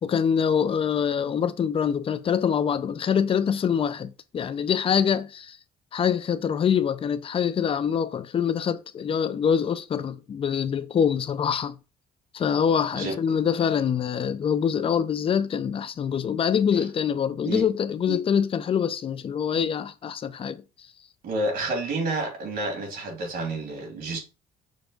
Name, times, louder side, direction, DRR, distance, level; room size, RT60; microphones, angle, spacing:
voice 1, 0.0-5.6 5.9-11.8 12.3-20.6, left 7 dB, 35° left, 0.4 m, -25 dB
voice 2, 21.2-24.2, right 2 dB, 65° right, 2.2 m, -29 dB
6.2 x 2.3 x 3.8 m
cardioid pair, 110°, 17 cm